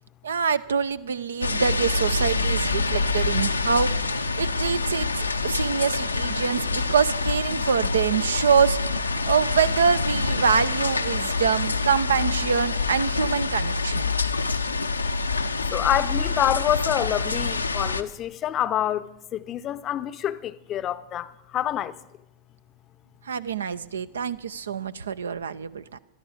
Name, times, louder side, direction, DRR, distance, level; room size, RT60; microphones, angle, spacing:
voice 1, 0.2-14.1 23.3-26.0, right 6 dB, 70° right, 0.6 m, -25 dB
sound 1, 1.4-18.0, left 3 dB, 80° left, 0.7 m, -26 dB
voice 2, 15.7-22.0, left 11 dB, 30° left, 0.7 m, -27 dB
20.0 x 13.0 x 5.0 m
figure-of-eight pair, 90°, 0 cm